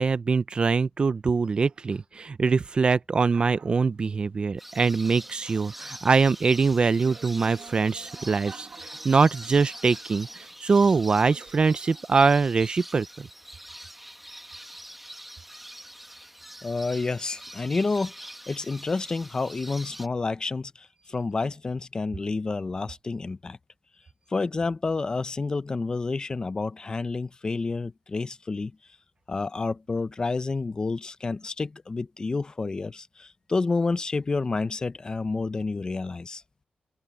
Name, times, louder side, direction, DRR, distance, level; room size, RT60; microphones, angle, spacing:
voice 1, 0.0-13.3, right 4 dB, 35° right, 0.4 m, -23 dB
sound 1, 3.3-3.8 4.7-10.7 10.9-12.0, right 5 dB, 55° right, 1.6 m, -50 dB
sound 2, 4.6-20.1, right 1 dB, 5° right, 0.9 m, -44 dB
voice 2, 16.6-18.1 18.5-23.6 24.3-28.7 29.3-36.4, left 3 dB, 25° left, 0.5 m, -29 dB
wide cardioid pair, 170°, 3 cm